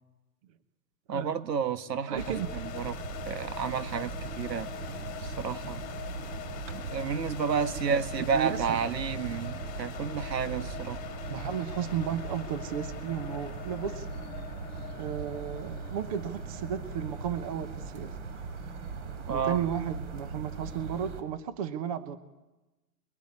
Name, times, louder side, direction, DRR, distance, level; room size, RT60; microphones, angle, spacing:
voice 1, 1.1-2.9 3.2-5.8 6.7-11.0 19.3-19.6, right 6 dB, 85° right, 1.9 m, -31 dB
voice 2, 2.1-2.5 7.8-8.0 8.3-8.8 11.3-14.1 15.0-18.1 19.3-22.2, right 9 dB, 20° right, 0.9 m, -34 dB
sound 1, 2.1-21.2, right 4 dB, 45° right, 3.5 m, -39 dB
sound 2, 2.2-19.0, left 12 dB, 15° left, 1.8 m, -44 dB
27.5 x 22.0 x 9.8 m
hypercardioid pair, 165°, 48 cm